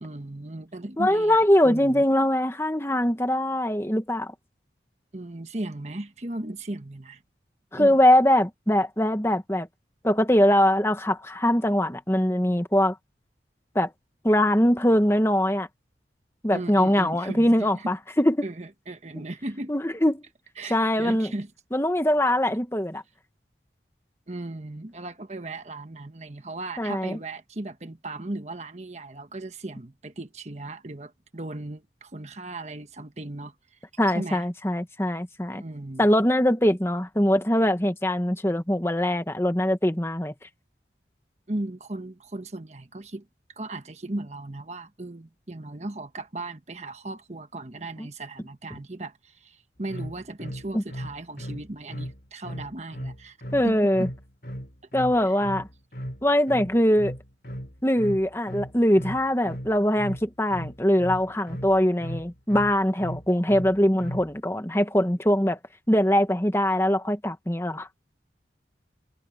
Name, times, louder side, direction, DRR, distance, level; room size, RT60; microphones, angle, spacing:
voice 1, 0.0-2.0 5.1-7.2 7.8-8.0 16.5-17.9 18.4-19.7 20.6-21.5 24.3-33.5 34.1-34.4 35.5-36.1 41.5-43.3 43.6-53.4 53.6-54.1 55.2-55.4, right 2 dB, 40° right, 1.3 m, -36 dB
voice 2, 1.0-4.3 7.7-9.7 10.0-12.9 13.7-13.9 14.2-15.7 16.4-18.5 19.7-20.2 20.7-21.3 21.7-23.0 26.8-27.2 34.0-35.6 36.0-40.3 48.0-48.1 50.7-50.8 53.5-54.1 54.9-55.7 56.2-57.1 57.8-65.6 65.9-67.9, left 1 dB, 15° left, 1.4 m, -22 dB
sound 1, 49.9-64.3, equal, 55° left, 3.7 m, -37 dB
head